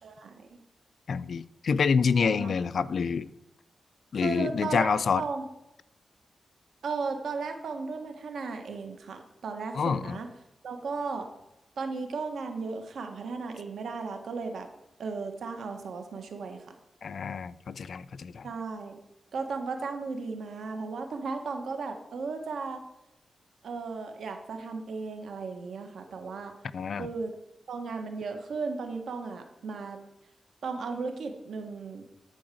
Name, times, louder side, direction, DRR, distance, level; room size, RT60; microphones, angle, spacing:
voice 1, 0.0-0.6 2.2-2.5 4.2-5.4 6.8-10.3 10.6-11.3 11.8-14.7 15.0-16.6 18.4-19.0 19.3-22.8 23.6-26.5 27.0-27.3 27.7-30.0 30.6-32.0, right 4 dB, 85° right, 5 dB, 1.5 m, -35 dB
voice 2, 1.1-3.3 4.1-5.2 9.7-10.2 17.0-18.5 26.7-27.1, left 5 dB, 70° left, 16 dB, 0.4 m, -27 dB
11.5 x 4.8 x 7.7 m, 0.91 s
cardioid pair, 80°, 0 cm